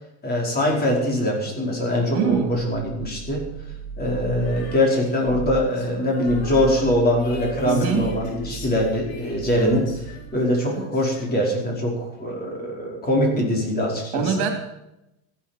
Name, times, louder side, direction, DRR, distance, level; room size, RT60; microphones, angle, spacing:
voice 1, 0.2-3.4 4.0-9.9 10.3-14.3, left 1 dB, 20° left, -1 dB, 4.8 m, -23 dB
voice 2, 2.1-2.6 7.6-8.1 10.7-10.8 14.1-14.5, right 6 dB, 60° right, 4 dB, 3.1 m, -23 dB
sound 1, 2.3-4.9 5.2-5.7 6.1-10.4, right 5 dB, 20° right, 3.1 m, -37 dB
Female singing, 4.4-11.7, left 4 dB, 70° left, 6.2 m, -41 dB
15.0 x 12.0 x 6.0 m, 0.87 s
cardioid pair, 150°, 43 cm